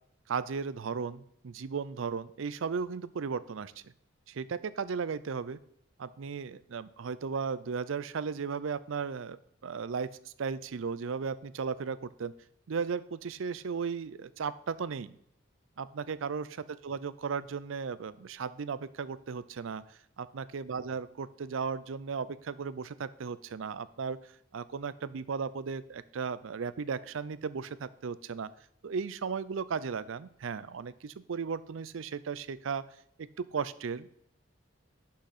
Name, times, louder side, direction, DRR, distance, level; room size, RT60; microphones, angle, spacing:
voice 1, 0.3-3.9 4.3-5.6 6.0-12.3 12.7-15.2 15.8-28.5 28.8-32.8 33.2-34.1, right 5 dB, 80° right, 17 dB, 0.5 m, -36 dB
11.5 x 6.4 x 4.1 m, 0.71 s
head